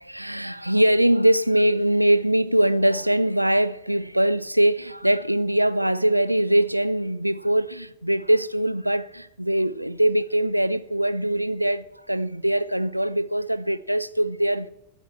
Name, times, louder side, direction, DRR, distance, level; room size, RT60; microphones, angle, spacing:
voice 1, 0.0-14.7, right 1 dB, 90° right, 0.5 m, -22 dB
25.0 x 8.8 x 3.2 m
figure-of-eight pair, 90°, 0 cm